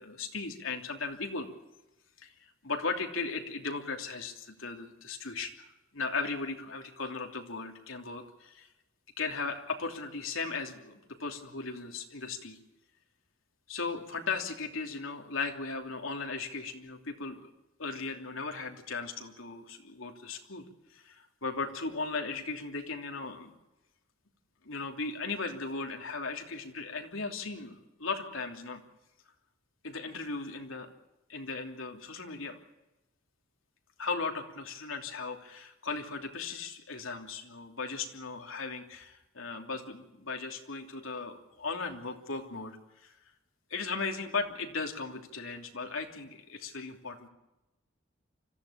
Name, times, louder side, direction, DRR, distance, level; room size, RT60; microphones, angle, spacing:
voice 1, 0.0-1.5 2.2-8.7 9.2-12.6 13.7-17.5 17.8-23.5 24.6-28.8 29.8-30.9 31.3-32.6 34.0-43.1 43.7-47.3, left 4 dB, 85° left, 3 dB, 3.1 m, -37 dB
25.5 x 15.0 x 8.7 m, 0.97 s
head